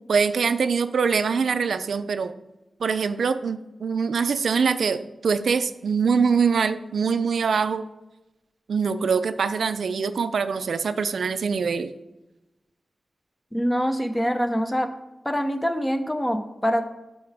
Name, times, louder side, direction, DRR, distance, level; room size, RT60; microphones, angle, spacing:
voice 1, 0.0-2.3 2.8-7.8 8.7-11.9, right 5 dB, 75° right, 11 dB, 0.4 m, -23 dB
voice 2, 13.5-14.9 15.2-16.9, equal, 10° left, 7 dB, 0.7 m, -25 dB
12.0 x 4.6 x 3.4 m, 0.98 s
wide cardioid pair, 130°, 0 cm